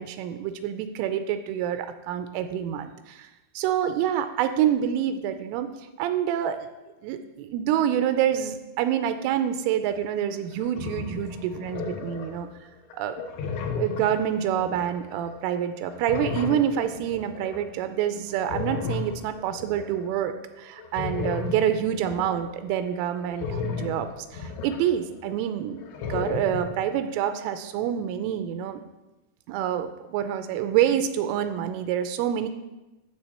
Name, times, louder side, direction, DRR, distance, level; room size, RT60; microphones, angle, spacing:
voice 1, 0.0-3.3 3.6-6.7 7.0-12.5 13.0-13.2 13.8-28.8 29.5-32.5, right 10 dB, 85° right, 9 dB, 3.1 m, -27 dB
sound 1, 10.0-10.1 10.5-12.5 12.9-15.6 15.9-17.6 18.3-20.1 20.8-25.5 25.7-26.7, left 5 dB, 75° left, 2.4 m, -34 dB
13.0 x 7.4 x 4.3 m, 1.0 s
omnidirectional pair, 5.8 m